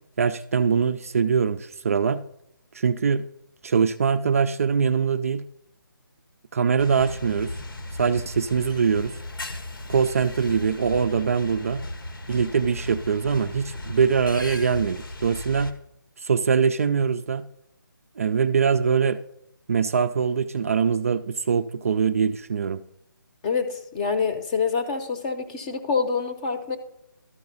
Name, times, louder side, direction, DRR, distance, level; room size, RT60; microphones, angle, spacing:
voice 1, 0.2-2.2 2.7-3.2 3.6-5.5 6.5-7.5 8.0-9.1 9.9-11.9 12.3-15.7 16.2-17.5 18.2-19.2 19.7-22.8, right 6 dB, 40° right, 11 dB, 0.4 m, -23 dB
sound 1, 6.8-15.7, left 2 dB, 80° left, 1.3 m, -36 dB
voice 2, 23.4-26.8, left 5 dB, 20° left, 7 dB, 0.7 m, -26 dB
12.5 x 4.7 x 5.4 m, 0.76 s
hypercardioid pair, 160°, 12 cm